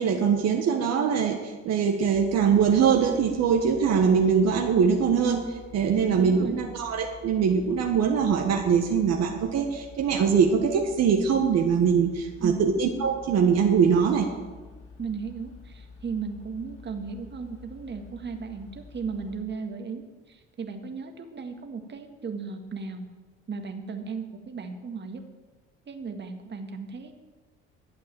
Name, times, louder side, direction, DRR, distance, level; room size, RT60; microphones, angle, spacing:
voice 1, 0.0-14.3, right 6 dB, 60° right, 2 dB, 1.5 m, -22 dB
sound 1, 2.1-19.4, left 4 dB, 50° left, 4.8 m, -48 dB
voice 2, 6.2-6.6 12.4-12.7 15.0-23.1 23.5-25.2 25.9-27.2, right 5 dB, 40° right, 5 dB, 1.8 m, -36 dB
12.0 x 8.4 x 7.6 m, 1.3 s
hypercardioid pair, 60°, 29 cm